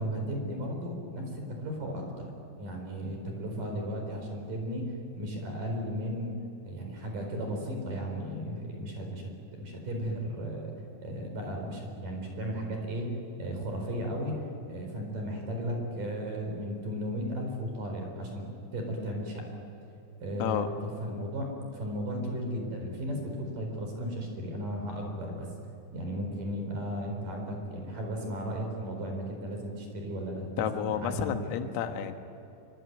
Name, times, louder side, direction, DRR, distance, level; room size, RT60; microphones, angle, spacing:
voice 1, 0.0-2.3 2.6-4.9 5.2-6.3 6.6-10.7 11.0-14.4 14.7-18.5 18.7-19.5 20.2-25.5 25.9-31.7, equal, 40° right, 2 dB, 5.6 m, -35 dB
voice 2, 30.6-32.1, left 9 dB, 85° left, 6 dB, 4.1 m, -31 dB
25.5 x 24.0 x 9.6 m, 2.8 s
omnidirectional pair, 6.0 m